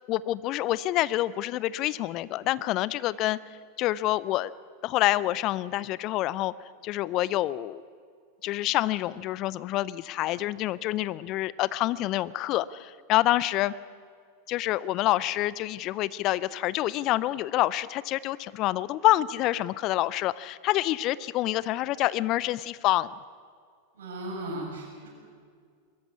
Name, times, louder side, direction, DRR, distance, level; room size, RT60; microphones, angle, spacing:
voice 1, 0.1-3.4 3.8-4.5 4.8-6.5 6.8-7.8 8.4-13.7 14.5-23.1, left 15 dB, 40° left, 20 dB, 0.6 m, -27 dB
voice 2, 23.9-25.1, right 1 dB, 65° right, -2 dB, 7.5 m, -36 dB
21.5 x 14.5 x 9.7 m, 2.1 s
figure-of-eight pair, 90°, 0 cm